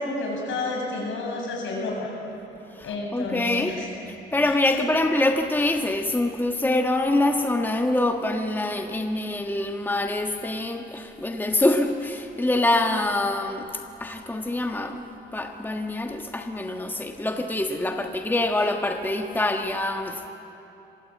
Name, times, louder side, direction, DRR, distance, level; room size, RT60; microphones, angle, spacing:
voice 1, 0.0-2.1 2.8-3.9 4.4-4.8, left 2 dB, 75° left, -1 dB, 7.9 m, -30 dB
voice 2, 2.7-3.8 4.1-13.7 14.0-15.0 15.3-20.3, left 2 dB, 10° left, 3 dB, 1.4 m, -25 dB
26.0 x 19.5 x 8.5 m, 3.0 s
cardioid pair, 90°, 20 cm